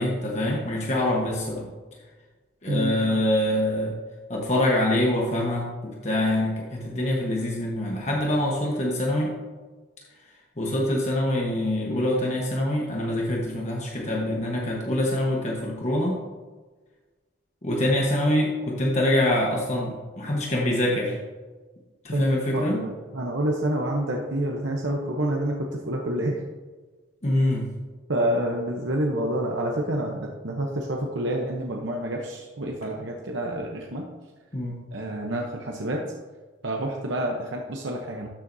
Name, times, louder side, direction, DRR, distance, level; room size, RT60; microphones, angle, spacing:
voice 1, 0.0-1.7 2.6-4.0 4.3-9.4 10.6-16.2 17.6-21.2 22.0-22.8 27.2-27.7 34.5-34.8, left 1 dB, 35° left, -2 dB, 1.2 m, -25 dB
voice 2, 2.7-3.2 22.1-26.4 28.1-34.1 34.9-36.0 36.6-38.3, right 1 dB, 70° right, 0 dB, 0.9 m, -28 dB
13.0 x 7.6 x 2.7 m, 1.3 s
head